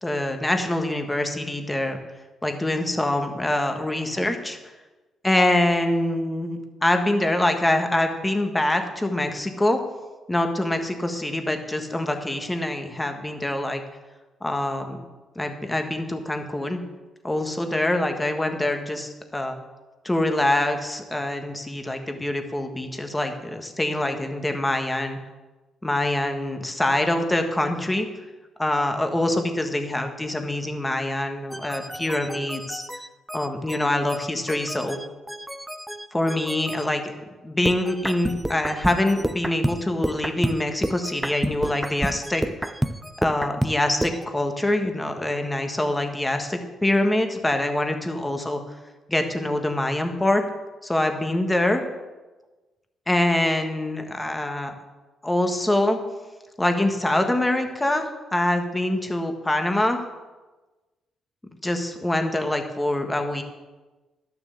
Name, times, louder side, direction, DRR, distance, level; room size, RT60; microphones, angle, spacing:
voice 1, 0.0-2.0 2.4-4.6 5.2-9.8 10.3-13.8 14.4-15.0 15.3-16.8 17.2-19.6 20.0-25.2 25.8-28.1 28.6-32.8 33.3-35.0 36.1-37.1 37.4-42.4 43.2-48.6 49.1-50.4 50.8-51.8 53.1-54.7 55.2-56.0 56.6-60.0 61.6-63.4, left 1 dB, 15° left, 5 dB, 1.5 m, -24 dB
sound 1, 31.5-36.9 37.7-44.2, right 1 dB, 5° right, 0.5 m, -30 dB
12.0 x 6.9 x 7.0 m, 1.2 s
cardioid pair, 90°, 0 cm